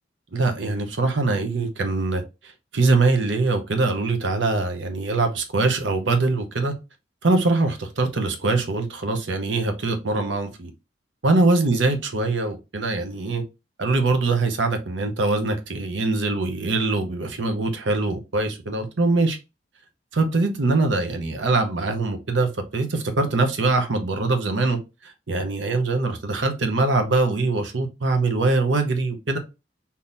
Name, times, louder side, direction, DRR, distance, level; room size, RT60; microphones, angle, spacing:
voice 1, 0.3-2.2 2.7-6.7 7.2-10.7 11.2-13.4 13.8-19.4 20.1-29.4, right 3 dB, 80° right, 0.8 m, -23 dB
3.7 x 2.8 x 2.5 m
head